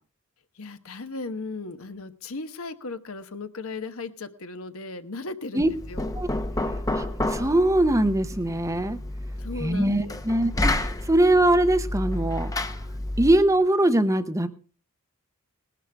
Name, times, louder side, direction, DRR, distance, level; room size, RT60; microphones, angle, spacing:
voice 1, 0.5-6.1 9.4-10.2, left 3 dB, 65° left, 9 dB, 1.2 m, -36 dB
Knock, 5.6-13.5, left 1 dB, 15° left, 0.8 m, -30 dB
voice 2, 6.9-9.0 9.6-12.5 13.2-14.5, right 1 dB, 15° right, 10 dB, 0.7 m, -22 dB
19.0 x 12.0 x 3.5 m, 0.36 s
head